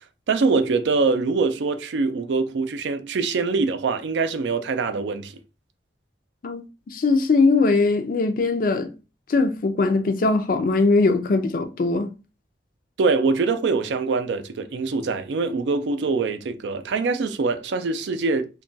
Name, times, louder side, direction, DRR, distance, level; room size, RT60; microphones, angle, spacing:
voice 1, 0.3-5.3 13.0-18.6, right 4 dB, 85° right, 0.4 m, -23 dB
voice 2, 6.4-8.9 9.3-12.1, left 3 dB, 50° left, 0.4 m, -21 dB
2.3 x 2.2 x 3.8 m
head